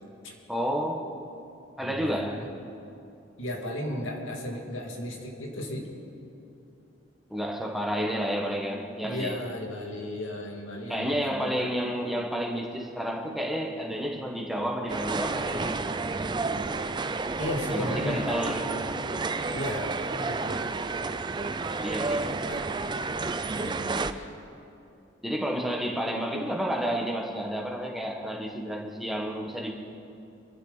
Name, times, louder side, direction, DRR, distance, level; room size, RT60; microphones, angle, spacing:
voice 1, 0.5-1.0 1.8-2.4 7.3-9.4 10.9-15.8 17.7-18.7 21.8-22.3 25.2-29.7, equal, ahead, 0 dB, 1.4 m, -30 dB
voice 2, 1.8-2.4 3.4-5.9 8.0-8.1 9.0-11.8 17.4-18.4 19.5-19.9 20.3-20.7 22.5-22.6 23.2-24.3, left 1 dB, 85° left, 0 dB, 2.4 m, -35 dB
sound 1, 14.9-24.1, right 3 dB, 25° right, 0.5 m, -31 dB
25.0 x 12.5 x 4.1 m, 2.7 s
head